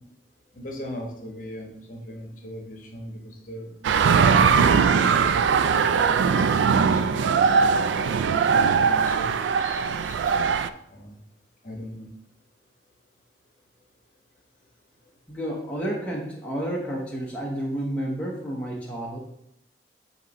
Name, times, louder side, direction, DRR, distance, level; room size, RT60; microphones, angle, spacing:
voice 1, 0.5-3.7 4.5-7.9 8.2-10.3 10.9-11.1 11.6-12.1, equal, 45° left, 1 dB, 1.1 m, -39 dB
sound 1, 3.8-10.7, right 6 dB, 80° right, 0.3 m, -20 dB
voice 2, 15.3-19.2, right 1 dB, 5° left, -4 dB, 0.8 m, -30 dB
6.4 x 2.9 x 5.2 m, 0.77 s
head